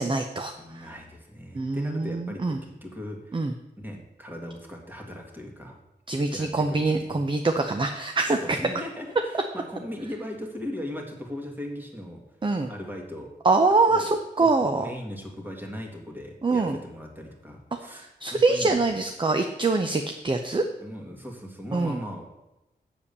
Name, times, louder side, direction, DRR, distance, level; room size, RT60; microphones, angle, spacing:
voice 1, 0.0-0.9 1.5-2.6 3.3-3.5 6.1-8.6 12.4-12.7 13.4-14.8 16.4-16.8 17.9-20.6 21.7-22.0, right 3 dB, 25° right, 6 dB, 0.6 m, -24 dB
voice 2, 0.6-3.5 3.8-5.8 6.3-6.5 6.9-7.2 8.4-12.2 12.7-13.3 13.9-14.1 14.4-18.9 20.8-22.3, left 1 dB, 10° right, 1 dB, 1.9 m, -38 dB
7.5 x 7.0 x 6.7 m, 0.96 s
wide cardioid pair, 115°, 19 cm